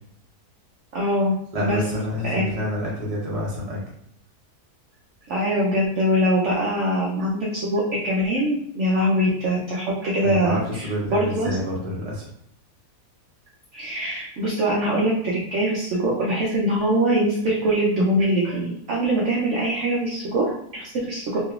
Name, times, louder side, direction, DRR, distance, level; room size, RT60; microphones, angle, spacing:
voice 1, 0.9-1.8 2.3-2.6 5.3-11.5 13.7-21.4, equal, 65° right, -4 dB, 0.7 m, -23 dB
voice 2, 1.5-3.8 10.2-12.3, left 1 dB, 30° right, -4 dB, 0.8 m, -28 dB
3.0 x 2.9 x 2.4 m, 0.70 s
omnidirectional pair, 1.7 m